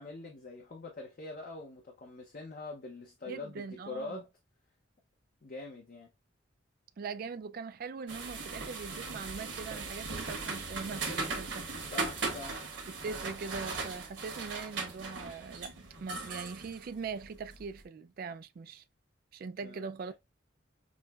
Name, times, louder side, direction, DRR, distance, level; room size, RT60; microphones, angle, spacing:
voice 1, 0.0-4.3 5.4-6.1 11.9-12.6 19.6-19.8, left 3 dB, 45° left, 0.6 m, -44 dB
voice 2, 3.3-4.2 7.0-11.7 12.9-18.8 19.3-20.1, right 5 dB, 50° right, 0.3 m, -41 dB
sound 1, 8.1-17.6, right 3 dB, 65° right, 1.2 m, -38 dB
6.0 x 2.1 x 2.2 m
head